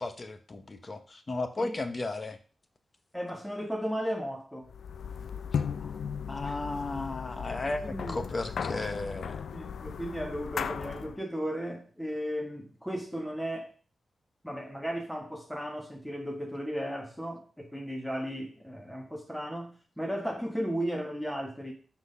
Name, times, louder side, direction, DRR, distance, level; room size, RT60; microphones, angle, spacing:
voice 1, 0.0-2.4 5.8-6.0 6.3-9.5, left 2 dB, 35° left, 0.8 m, -35 dB
voice 2, 3.1-4.7 6.4-6.5 7.8-8.2 9.5-13.7 14.4-21.7, equal, ahead, 1.2 m, -35 dB
sound 1, 4.7-11.2, left 7 dB, 85° left, 0.4 m, -36 dB
5.9 x 4.1 x 5.5 m
wide cardioid pair, 100°, 0 cm